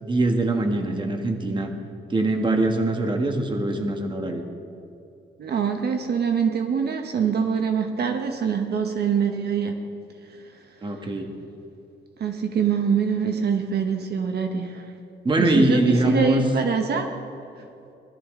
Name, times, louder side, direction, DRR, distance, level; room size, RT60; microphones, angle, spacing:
voice 1, 0.0-1.7 2.1-4.4 10.8-11.3 15.2-16.4, right 2 dB, 25° right, 4 dB, 1.4 m, -22 dB
voice 2, 5.4-9.7 12.2-14.9 15.4-17.1, right 6 dB, 60° right, 5 dB, 1.1 m, -24 dB
20.5 x 12.5 x 3.7 m, 2.6 s
cardioid pair, 130°, 19 cm